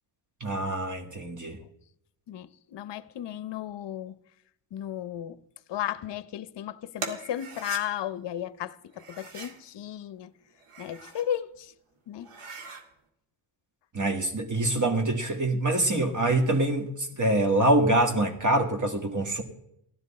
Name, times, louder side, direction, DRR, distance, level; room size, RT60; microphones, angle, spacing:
voice 1, 0.4-1.6 13.9-19.4, right 1 dB, 35° right, 1.8 m, -25 dB
voice 2, 2.3-4.2 4.7-5.4 5.7-10.3 10.8-11.7 12.1-12.3, left 11 dB, 55° left, 0.8 m, -34 dB
sound 1, 7.0-7.8 8.9-9.6 10.5-11.3 11.7-11.8 12.2-12.8, right 4 dB, 80° right, 2.0 m, -40 dB
15.5 x 12.0 x 4.2 m
cardioid pair, 100°, 50 cm